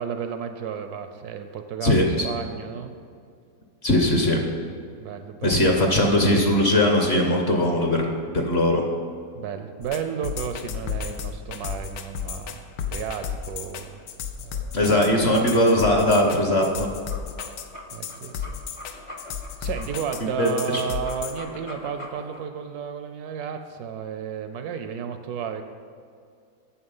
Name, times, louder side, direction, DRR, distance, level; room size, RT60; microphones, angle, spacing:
voice 1, 0.0-2.9 5.0-5.6 9.3-14.0 14.4-14.8 17.9-18.6 19.6-25.6, right 7 dB, 70° right, 7 dB, 1.0 m, -33 dB
voice 2, 1.8-2.2 3.8-4.4 5.4-8.0 8.3-8.8 14.7-16.9 20.2-20.8, left 1 dB, 45° left, 2 dB, 1.0 m, -20 dB
sound 1, 9.8-21.4, left 8 dB, 75° left, 1.3 m, -33 dB
sound 2, 16.9-22.4, left 1 dB, 30° left, 0.6 m, -42 dB
8.8 x 7.1 x 5.4 m, 2.3 s
omnidirectional pair, 1.8 m